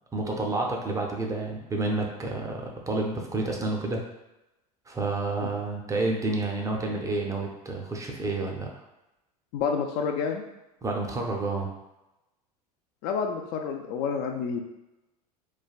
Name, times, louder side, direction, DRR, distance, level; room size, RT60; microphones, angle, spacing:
voice 1, 0.1-4.0 4.9-8.7 10.8-11.7, right 2 dB, 15° right, 0 dB, 0.5 m, -29 dB
voice 2, 9.5-10.4 13.0-14.6, left 6 dB, 50° left, 3 dB, 0.4 m, -29 dB
3.2 x 2.2 x 2.4 m, 0.96 s
hypercardioid pair, 80°, 20 cm